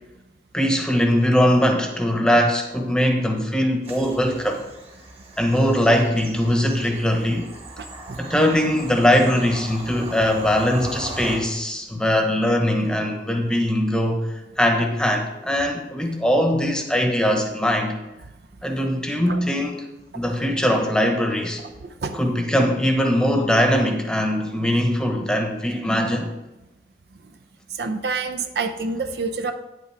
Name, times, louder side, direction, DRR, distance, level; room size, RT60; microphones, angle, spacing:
voice 1, 0.5-4.6 5.4-7.5 8.2-18.0 18.6-19.8 20.1-21.6 22.1-26.3, equal, 5° left, 3 dB, 1.0 m, -21 dB
Bird vocalization bird call bird song / Train, 3.8-11.4, right 1 dB, 35° right, 1.6 m, -38 dB
voice 2, 7.8-8.2 19.3-19.4 21.8-22.2 27.7-29.5, right 4 dB, 65° right, 7 dB, 0.6 m, -28 dB
9.6 x 8.3 x 3.4 m, 1.0 s
head